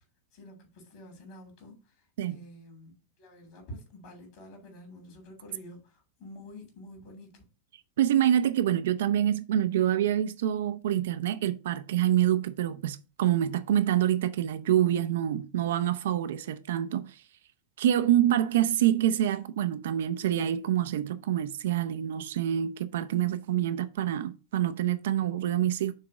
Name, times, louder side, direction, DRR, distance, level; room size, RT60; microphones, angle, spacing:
voice 1, 0.3-1.7 2.3-2.9 3.2-7.4, left 1 dB, 50° left, 3.0 m, -48 dB
voice 2, 8.0-17.2 17.8-25.9, right 11 dB, 60° right, 0.5 m, -26 dB
6.4 x 3.7 x 4.8 m
figure-of-eight pair, 90°, 0 cm